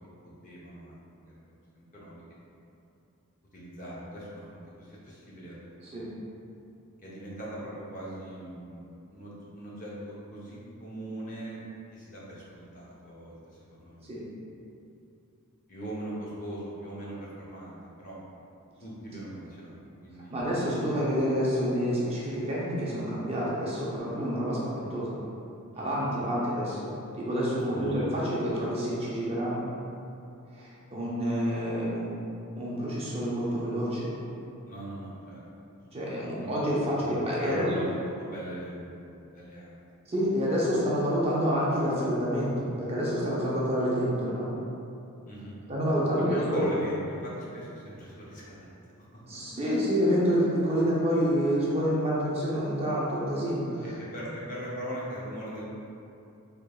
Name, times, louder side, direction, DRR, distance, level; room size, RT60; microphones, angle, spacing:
voice 1, 0.4-1.3 1.7-2.2 3.5-4.4 4.8-6.0 7.0-11.6 11.9-14.1 15.7-18.2 18.8-20.4 25.7-26.3 27.6-28.1 34.7-35.4 35.9-36.5 37.0-37.9 38.2-39.8 45.3-45.6 46.1-48.7 49.1-49.2 53.8-55.6, right 1 dB, 35° left, -7 dB, 0.7 m, -41 dB
voice 2, 20.3-25.1 25.8-26.9 27.1-29.7 30.5-32.2 32.6-34.1 35.9-37.8 40.1-44.5 45.7-46.6 49.3-53.8, equal, 25° right, -7 dB, 0.6 m, -28 dB
3.6 x 3.4 x 2.3 m, 2.7 s
head